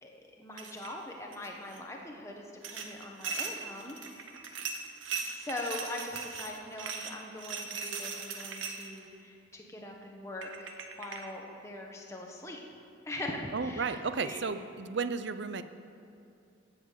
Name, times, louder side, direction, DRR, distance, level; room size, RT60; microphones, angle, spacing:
voice 1, 0.0-4.0 5.1-10.7 11.0-14.4, left 1 dB, 15° left, 0 dB, 1.2 m, -42 dB
sound 1, 0.6-1.0 1.3-1.8 2.6-9.0 10.0-10.1 10.4-11.3, right 5 dB, 85° right, 1.1 m, -39 dB
voice 2, 13.5-15.6, right 5 dB, 60° right, 11 dB, 0.6 m, -33 dB
16.0 x 7.3 x 6.6 m, 2.6 s
head